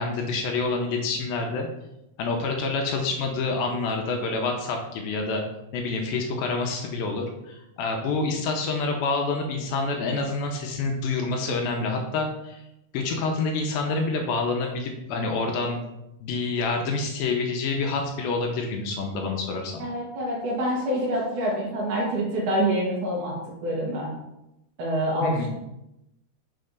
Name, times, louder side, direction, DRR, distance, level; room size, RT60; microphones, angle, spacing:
voice 1, 0.0-1.7 2.2-5.4 5.7-12.6 12.9-15.8 16.2-19.9 25.2-25.5, left 3 dB, 80° left, 2 dB, 2.3 m, -27 dB
voice 2, 19.8-24.1 24.8-25.5, equal, 65° right, -5 dB, 2.3 m, -26 dB
6.5 x 3.3 x 5.2 m, 0.89 s
omnidirectional pair, 4.7 m